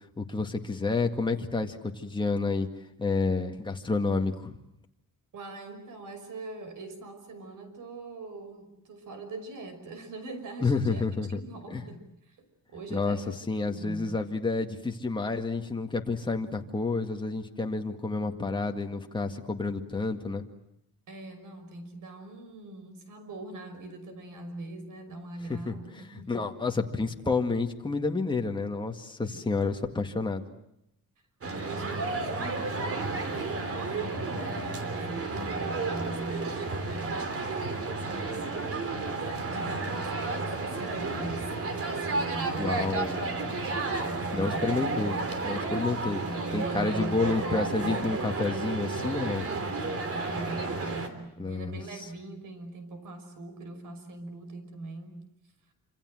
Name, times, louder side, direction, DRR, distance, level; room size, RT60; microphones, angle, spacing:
voice 1, 0.2-2.7 3.0-4.6 10.6-11.4 11.7-11.8 12.9-13.2 13.5-20.4 25.5-25.7 26.3-30.4 42.6-43.2 44.3-45.2 45.4-46.2 46.5-49.5 51.4-52.1, left 3 dB, 15° left, 3 dB, 2.0 m, -29 dB
voice 2, 5.3-12.4 12.7-13.3 13.7-14.1 21.1-26.4 29.2-29.4 31.5-37.4 39.5-42.9 43.3-44.7 46.0-48.0 49.4-55.2, right 2 dB, 60° right, 9 dB, 5.8 m, -42 dB
sound 1, 31.4-51.1, right 3 dB, 40° right, 3.2 m, -32 dB
27.0 x 27.0 x 7.8 m, 0.81 s
cardioid pair, 140°, 35 cm